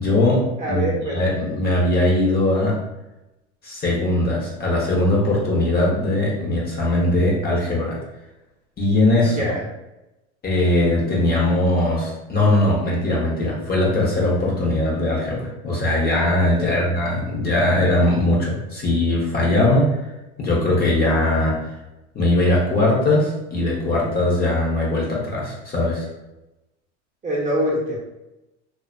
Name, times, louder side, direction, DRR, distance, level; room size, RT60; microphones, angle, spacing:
voice 1, 0.0-2.8 3.6-8.0 8.8-9.5 10.4-20.0 20.4-21.6 22.1-26.1, left 1 dB, 25° left, -4 dB, 0.7 m, -20 dB
voice 2, 0.6-1.2 9.2-9.6 16.6-16.8 27.2-28.0, equal, 20° right, -4 dB, 0.7 m, -25 dB
2.5 x 2.2 x 2.5 m, 0.95 s
hypercardioid pair, 100°, 36 cm